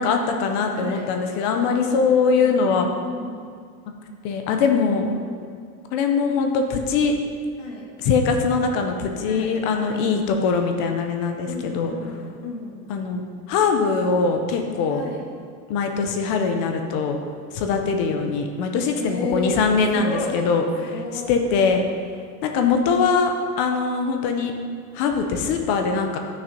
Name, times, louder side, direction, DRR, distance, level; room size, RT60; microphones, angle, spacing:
voice 1, 0.0-2.9 4.2-5.1 5.9-7.1 8.0-11.9 12.9-13.2 13.5-15.0 15.7-17.2 17.5-20.6 21.3-21.9 22.4-24.5 24.9-26.2, left 5 dB, 25° left, 4 dB, 0.5 m, -22 dB
voice 2, 0.7-1.1 1.8-2.6 3.0-3.4 5.0-5.4 7.6-7.9 9.2-10.1 11.5-12.9 14.9-15.2 19.0-19.6 19.9-20.5 20.8-21.4, left 3 dB, 60° left, -2 dB, 2.4 m, -32 dB
11.0 x 6.4 x 5.2 m, 2.1 s
supercardioid pair, 170°, 44 cm